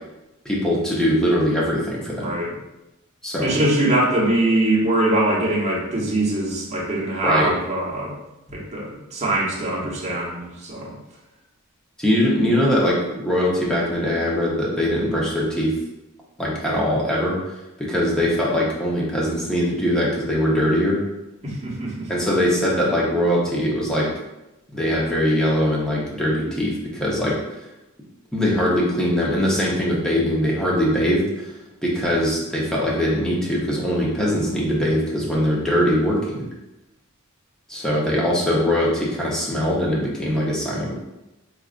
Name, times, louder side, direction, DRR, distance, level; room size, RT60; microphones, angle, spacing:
voice 1, 0.4-2.3 3.2-3.5 7.2-7.5 12.0-15.7 16.4-17.4 17.8-21.0 22.1-24.1 24.7-27.4 28.3-31.2 31.8-36.5 37.7-41.0, equal, 5° left, -5 dB, 0.8 m, -21 dB
voice 2, 2.2-2.5 3.4-8.1 8.5-11.0 21.4-22.1, right 1 dB, 35° right, -5 dB, 0.9 m, -22 dB
4.8 x 2.4 x 2.4 m, 0.95 s
head